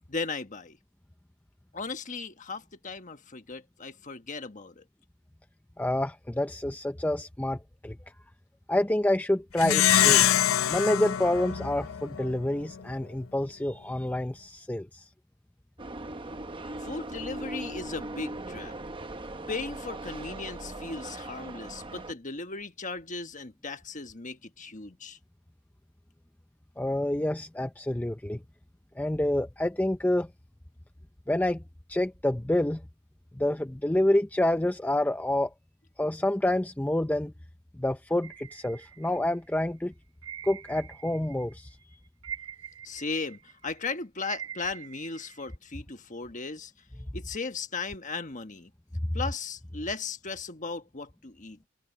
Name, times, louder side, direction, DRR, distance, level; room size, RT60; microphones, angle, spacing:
voice 1, 0.1-0.8 1.7-4.8 16.8-18.7 19.5-25.2 42.8-46.7 47.1-48.7 49.1-51.6, left 4 dB, 35° left, 1.3 m, -37 dB
voice 2, 5.8-8.0 8.7-10.3 10.7-15.1 26.8-28.4 29.0-30.3 31.3-31.6 31.9-32.8 33.4-35.5 36.0-37.3 37.8-39.9 40.4-41.8, left 1 dB, 10° left, 0.4 m, -28 dB
Plucked string instrument, 9.6-12.4, left 11 dB, 80° left, 0.6 m, -24 dB
sound 1, 15.8-22.1, right 2 dB, 25° right, 0.9 m, -39 dB
sound 2, 38.2-39.5 40.2-41.5 41.8-45.6, right 9 dB, 80° right, 5.7 m, -44 dB
head